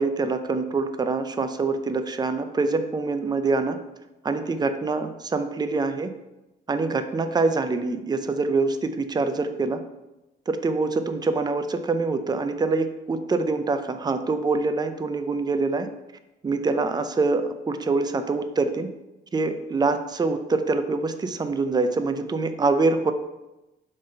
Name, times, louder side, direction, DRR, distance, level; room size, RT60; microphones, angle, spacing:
voice 1, 0.0-3.8 4.2-6.1 6.7-9.8 10.5-15.9 16.4-18.9 19.3-23.1, right 3 dB, 20° right, 8 dB, 0.5 m, -25 dB
4.9 x 3.8 x 5.3 m, 0.99 s
cardioid pair, 90°, 20 cm